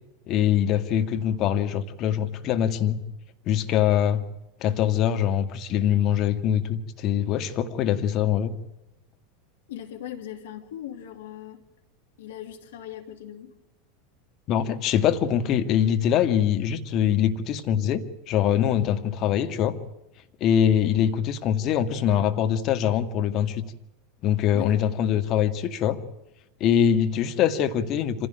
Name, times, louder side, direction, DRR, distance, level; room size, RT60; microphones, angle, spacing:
voice 1, 0.3-3.0 3.5-4.2 4.6-8.5 14.5-19.8 20.4-23.7 24.2-26.0 26.6-28.3, left 9 dB, 45° left, 7 dB, 2.0 m, -23 dB
voice 2, 9.7-11.6 12.2-13.5 24.5-24.8, left 11 dB, 70° left, 6 dB, 2.9 m, -39 dB
26.0 x 16.5 x 9.2 m, 0.95 s
hypercardioid pair, 85°, 0 cm